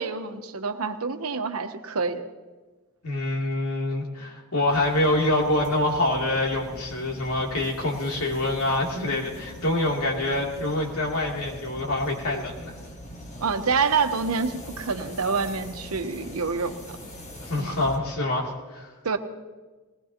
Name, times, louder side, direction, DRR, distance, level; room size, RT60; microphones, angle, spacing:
voice 1, 0.0-2.3 13.4-17.0 17.6-17.8 19.0-19.2, right 5 dB, 90° right, 7 dB, 1.1 m, -27 dB
voice 2, 3.0-12.7 17.5-18.9, left 1 dB, 85° left, -1 dB, 2.9 m, -26 dB
sound 1, 4.7-18.0, left 1 dB, 35° left, 1.6 m, -42 dB
20.0 x 19.5 x 2.9 m, 1.3 s
head